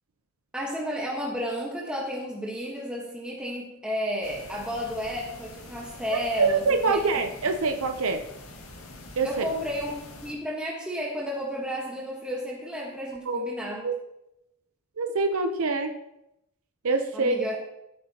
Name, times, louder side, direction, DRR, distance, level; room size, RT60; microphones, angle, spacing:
voice 1, 0.5-7.0 9.2-10.0 10.2-13.8 17.1-17.6, equal, 5° right, -3 dB, 1.3 m, -32 dB
sound 1, 4.2-10.3, left 2 dB, 90° left, 1.9 m, -45 dB
voice 2, 6.1-8.2 9.2-9.5 13.3-13.5 13.8-14.0 15.0-15.9 16.8-17.5, right 3 dB, 90° right, 6 dB, 0.8 m, -25 dB
14.5 x 9.1 x 2.9 m, 0.85 s
head